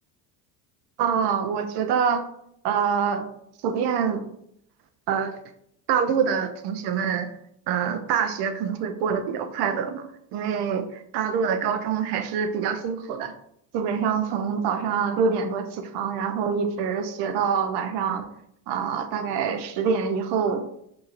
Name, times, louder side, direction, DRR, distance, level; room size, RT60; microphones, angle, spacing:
voice 1, 1.0-2.2 2.6-3.3 3.6-4.3 5.1-5.3 5.9-7.3 7.7-13.3 13.7-18.3 18.7-20.6, right 6 dB, 60° right, 8 dB, 0.7 m, -25 dB
5.6 x 2.7 x 2.5 m, 0.75 s
supercardioid pair, 100°, 45 cm